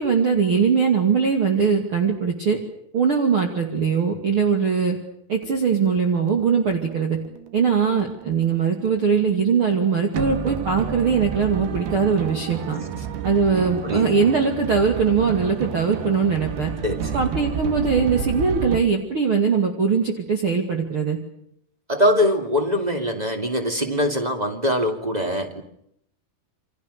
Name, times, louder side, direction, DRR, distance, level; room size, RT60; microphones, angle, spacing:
voice 1, 0.0-2.6 2.9-5.0 5.3-7.2 7.5-12.8 13.2-16.7 17.1-21.2, right 6 dB, 40° right, 3 dB, 2.9 m, -21 dB
sound 1, 5.4-18.8, right 7 dB, 75° right, 3.6 m, -31 dB
voice 2, 16.8-17.2 21.9-25.6, left 1 dB, 15° right, 5 dB, 2.1 m, -22 dB
29.0 x 25.5 x 6.8 m, 0.73 s
omnidirectional pair, 4.4 m